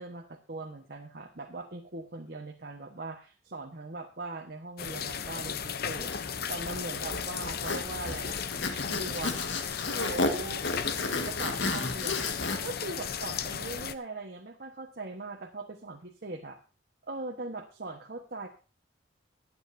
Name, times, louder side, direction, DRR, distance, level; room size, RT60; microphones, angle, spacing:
voice 1, 0.0-8.4 8.8-9.5 9.9-10.6 11.2-12.3 12.6-16.6 17.0-18.5, right 2 dB, 55° right, 1 dB, 1.3 m, -40 dB
sound 1, 4.8-14.0, left 7 dB, 55° left, 0.7 m, -35 dB
Zipper (clothing), 6.0-12.6, left 3 dB, 75° left, 1.6 m, -33 dB
22.0 x 9.0 x 2.7 m, 0.36 s
head